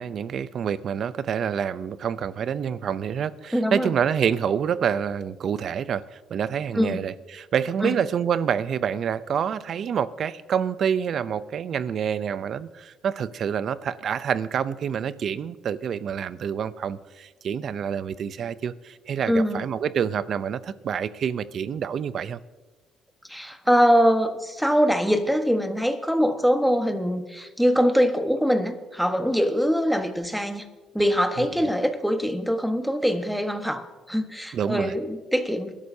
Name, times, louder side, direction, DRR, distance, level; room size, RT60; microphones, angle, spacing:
voice 1, 0.0-22.4 34.5-35.0, right 8 dB, 55° right, 16 dB, 0.6 m, -27 dB
voice 2, 3.5-3.9 6.7-7.0 7.8-8.0 19.2-19.6 23.3-30.6 30.9-35.7, equal, ahead, 6 dB, 1.3 m, -23 dB
22.5 x 12.5 x 2.8 m, 1.2 s
cardioid pair, 105°, 0 cm